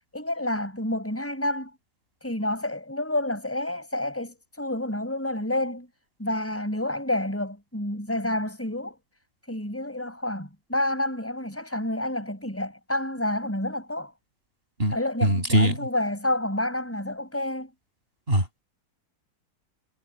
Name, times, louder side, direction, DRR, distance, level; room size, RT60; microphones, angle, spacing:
voice 1, 0.1-1.7 2.2-5.9 6.2-9.0 9.5-14.1 14.9-17.7, left 1 dB, 5° left, 6.0 m, -29 dB
voice 2, 14.8-15.7 18.3-18.6, right 1 dB, 30° right, 7.2 m, -22 dB
omnidirectional pair, 2.0 m